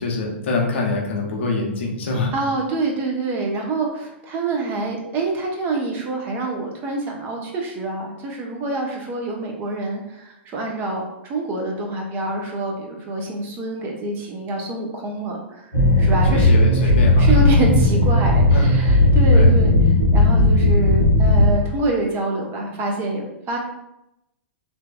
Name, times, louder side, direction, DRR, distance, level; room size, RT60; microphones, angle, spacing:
voice 1, 0.0-2.3 16.3-17.4 18.5-18.7 19.3-19.5, left 3 dB, 65° left, 0 dB, 0.7 m, -25 dB
voice 2, 2.3-11.0 11.3-16.9 17.2-19.7 20.1-23.6, right 2 dB, 30° right, 0 dB, 0.6 m, -26 dB
sound 1, 15.7-21.5, left 1 dB, 90° right, 1.0 m, -15 dB
2.6 x 2.3 x 2.2 m, 0.86 s
figure-of-eight pair, 105°, 7 cm